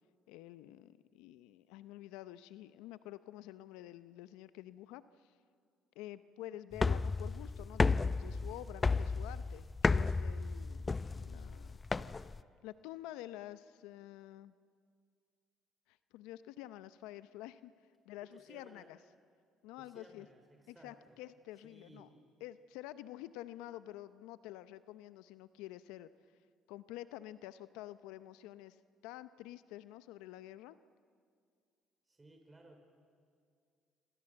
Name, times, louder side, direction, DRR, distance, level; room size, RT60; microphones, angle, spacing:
voice 1, 0.3-5.3 6.0-11.8 12.6-14.5 15.9-17.7 18.0-19.0 19.6-20.3 20.7-22.1 22.4-26.1 26.7-30.8, left 14 dB, 80° left, 14 dB, 0.6 m, -49 dB
sound 1, 6.7-12.4, left 4 dB, 30° left, 0.7 m, -33 dB
voice 2, 18.2-18.9 19.8-21.2 21.6-22.1 32.1-32.8, right 2 dB, 20° right, 4 dB, 4.8 m, -59 dB
27.0 x 26.5 x 7.9 m, 2.2 s
supercardioid pair, 65°, 0 cm